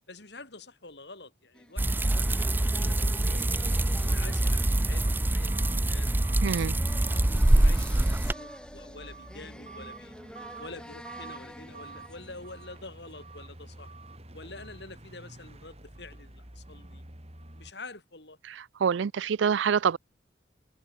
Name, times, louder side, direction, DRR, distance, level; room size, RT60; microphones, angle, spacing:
voice 1, 0.1-3.5 4.0-6.4 6.9-10.1 10.6-13.9 14.3-17.0 17.6-18.4, left 3 dB, 65° left, 5.1 m, -47 dB
sound 1, 1.5-13.4, equal, 5° left, 6.8 m, -48 dB
sound 2, 1.8-8.3, right 1 dB, 10° right, 0.4 m, -25 dB
sound 3, 5.0-17.7, right 2 dB, 35° right, 4.3 m, -48 dB
voice 2, 6.4-6.8 18.5-18.6 18.8-20.0, right 7 dB, 80° right, 0.4 m, -26 dB
head